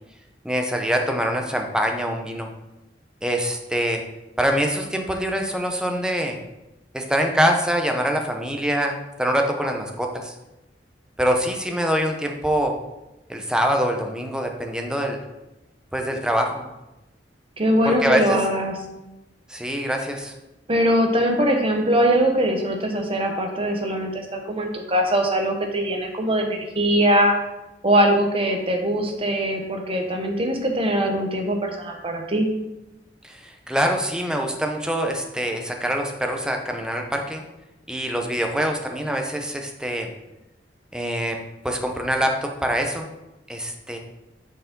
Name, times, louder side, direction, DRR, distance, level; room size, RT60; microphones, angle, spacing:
voice 1, 0.4-2.5 3.2-4.0 4.4-6.4 6.9-10.3 11.2-12.7 13.3-15.2 15.9-16.6 17.8-18.4 19.5-20.3 33.2-37.4 37.9-40.1 40.9-41.4 41.6-43.1 43.5-44.0, equal, 5° right, 3 dB, 0.7 m, -24 dB
voice 2, 17.6-18.8 20.7-27.3 27.8-32.5, equal, 30° right, 2 dB, 1.0 m, -21 dB
6.4 x 4.6 x 5.2 m, 0.97 s
head